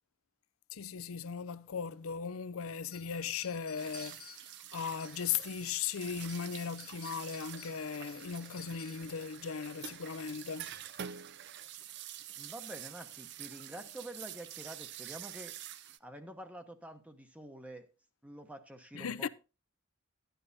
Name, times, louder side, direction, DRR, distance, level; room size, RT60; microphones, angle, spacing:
voice 1, 0.7-4.4 4.7-10.8 18.9-19.3, left 7 dB, 80° left, 0.5 m, -38 dB
sound 1, 2.9-5.8 6.2-9.2, left 7 dB, 50° left, 0.9 m, -55 dB
sound 2, 3.8-16.0, right 10 dB, 55° right, 0.5 m, -47 dB
voice 2, 12.4-15.5 16.0-17.9 18.2-19.3, right 1 dB, 5° right, 0.9 m, -47 dB
12.0 x 10.5 x 2.7 m
head